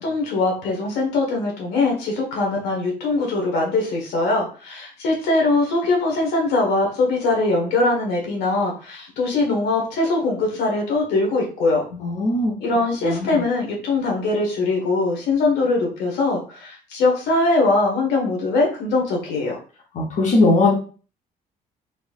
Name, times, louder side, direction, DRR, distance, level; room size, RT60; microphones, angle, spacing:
voice 1, 0.0-11.8 12.6-19.6, left 2 dB, 85° left, 0 dB, 1.5 m, -21 dB
voice 2, 11.9-12.5 13.0-13.4 19.9-20.7, left 2 dB, 45° left, -1 dB, 0.9 m, -19 dB
4.2 x 3.2 x 2.4 m, 0.38 s
cardioid pair, 110°, 17 cm